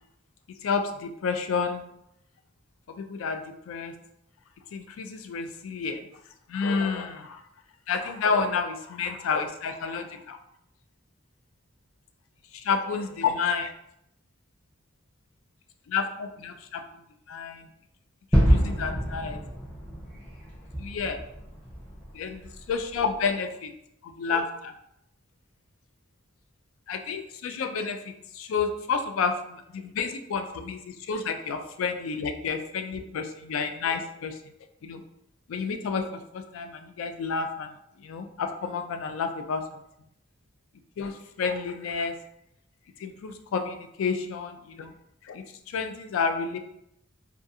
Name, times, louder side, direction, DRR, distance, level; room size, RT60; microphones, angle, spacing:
voice 1, 0.5-1.9 2.9-3.9 4.7-6.1 6.5-7.4 7.9-10.4 12.5-13.7 15.9-17.7 18.4-19.4 20.8-21.2 22.1-23.7 24.0-24.7 26.9-34.5 34.8-35.0 35.5-39.8 41.0-42.2 43.0-44.9 45.2-46.6, left 5 dB, 85° left, 6 dB, 0.3 m, -30 dB
Gunshot gunfire / Fireworks / Boom, 18.3-23.1, equal, 5° left, 0.5 m, -27 dB
2.4 x 2.3 x 2.6 m, 0.79 s
head